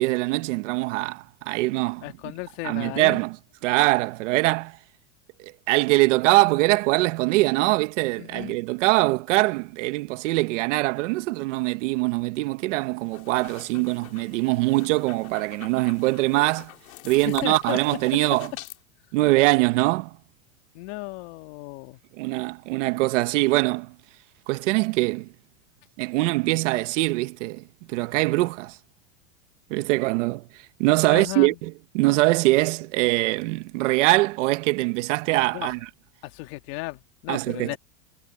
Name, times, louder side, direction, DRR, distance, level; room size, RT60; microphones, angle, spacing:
voice 1, 0.0-2.0 2.6-3.4 3.6-4.8 5.4-16.7 17.0-18.5 19.1-20.1 22.2-23.9 24.5-25.3 26.0-28.8 29.7-30.4 30.8-35.8 37.3-37.8, right 21 dB, 60° right, 1.1 m, -23 dB
voice 2, 2.0-3.2 8.2-8.6 17.1-17.8 20.7-22.0 31.1-31.6 35.5-35.7 36.2-37.8, left 22 dB, 50° left, 1.8 m, -35 dB
sound 1, 13.0-18.8, left 17 dB, 90° left, 4.2 m, -44 dB
supercardioid pair, 165°, 40 cm